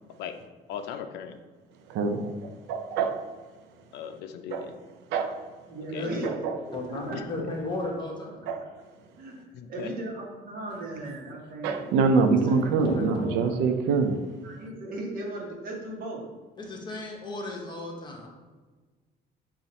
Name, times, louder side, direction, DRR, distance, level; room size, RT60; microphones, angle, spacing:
voice 1, 0.7-1.3 3.9-4.7 5.9-6.1 7.1-7.5 9.5-9.9, left 8 dB, 80° left, 8 dB, 0.4 m, -37 dB
voice 2, 1.9-3.2 4.5-4.7 5.1-5.4 6.2-6.6 8.5-8.6 11.6-14.2, right 4 dB, 85° right, 6 dB, 0.4 m, -25 dB
voice 3, 5.7-6.4 6.7-7.2 9.2-9.3 9.7-11.9 14.4-16.3, right 2 dB, 60° right, -1 dB, 1.0 m, -37 dB
voice 4, 6.7-8.4 12.3-13.6 16.6-18.3, left 2 dB, 25° left, -1 dB, 0.9 m, -35 dB
4.1 x 2.5 x 4.1 m, 1.3 s
cardioid pair, 110°, 17 cm